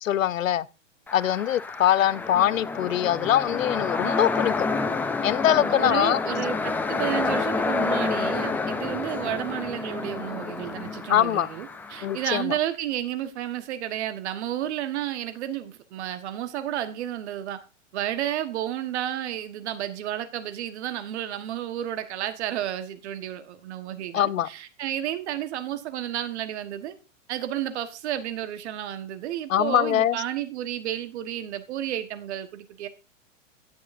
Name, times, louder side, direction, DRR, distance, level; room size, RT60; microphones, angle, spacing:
voice 1, 0.0-0.7 1.1-4.7 5.2-6.2 11.1-11.5 12.0-12.5 24.1-24.5 29.5-30.2, left 11 dB, 90° left, 0.6 m, -23 dB
sound 1, 1.1-12.4, left 3 dB, 5° left, 0.4 m, -29 dB
voice 2, 5.5-17.6 17.9-26.9 27.3-32.9, right 11 dB, 60° right, 1.4 m, -31 dB
17.5 x 7.0 x 2.6 m
hypercardioid pair, 120°, 39 cm